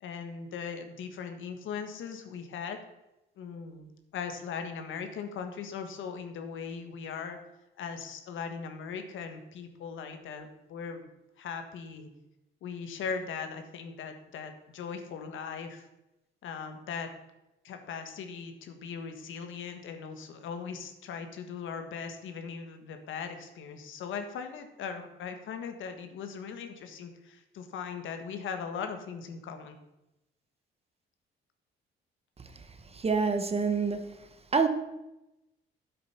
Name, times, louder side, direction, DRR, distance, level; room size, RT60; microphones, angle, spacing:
voice 1, 0.0-2.8 3.4-7.4 7.8-11.0 11.4-12.1 12.6-15.8 16.4-17.1 17.6-29.8, left 6 dB, 80° left, 1.5 m, -39 dB
voice 2, 32.9-34.2 34.5-34.7, right 5 dB, 30° right, 1.2 m, -26 dB
9.8 x 7.7 x 5.8 m
cardioid pair, 90°, 20 cm